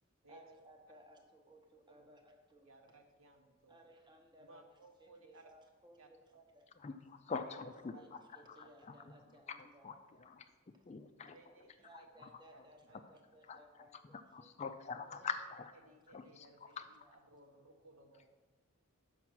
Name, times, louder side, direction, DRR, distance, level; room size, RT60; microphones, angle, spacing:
voice 1, 0.3-2.7 3.7-4.7 5.0-6.7 7.3-7.4 7.8-10.2 11.8-14.7 15.1-15.2 15.8-15.9 16.2-16.4 17.0-17.1, right 1 dB, 20° right, 3 dB, 0.8 m, -61 dB
voice 2, 2.6-3.8 4.4-5.5 6.0-6.1 7.4-7.6 7.9-8.1 8.5-8.6 11.2-11.9 12.5-13.0 14.9-15.3 15.8-18.4, right 2 dB, 70° right, 4 dB, 1.0 m, -61 dB
voice 3, 6.8-8.2 8.5-9.1 9.5-9.6 9.8-10.4 10.9-11.4 11.9-12.0 13.5-15.7 16.1-16.5 16.8-16.9, left 5 dB, 30° left, 8 dB, 0.3 m, -44 dB
5.9 x 5.8 x 6.1 m, 1.3 s
head